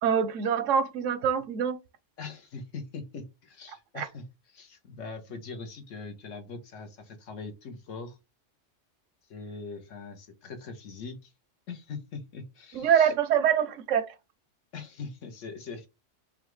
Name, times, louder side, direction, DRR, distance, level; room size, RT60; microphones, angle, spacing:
voice 1, 0.0-1.8 3.9-4.1 12.7-14.1, right 8 dB, 90° right, 1.0 m, -25 dB
voice 2, 2.2-4.2 4.5-8.2 9.3-11.3 11.7-13.1 14.7-15.9, left 4 dB, 85° left, 1.3 m, -41 dB
5.5 x 2.3 x 3.1 m
omnidirectional pair, 1.2 m